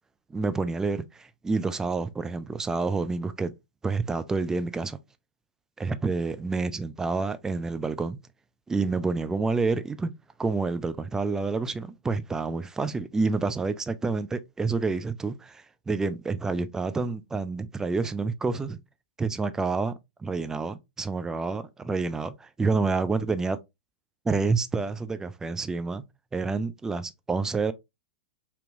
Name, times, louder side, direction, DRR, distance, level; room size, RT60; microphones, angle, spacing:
voice 1, 0.3-3.5 3.8-5.0 5.8-8.2 8.7-10.1 10.4-18.8 19.2-19.9 20.2-23.6 24.3-26.0 26.3-27.7, right 4 dB, 10° right, 0.4 m, -28 dB
5.1 x 2.9 x 2.5 m
figure-of-eight pair, 100°, 5 cm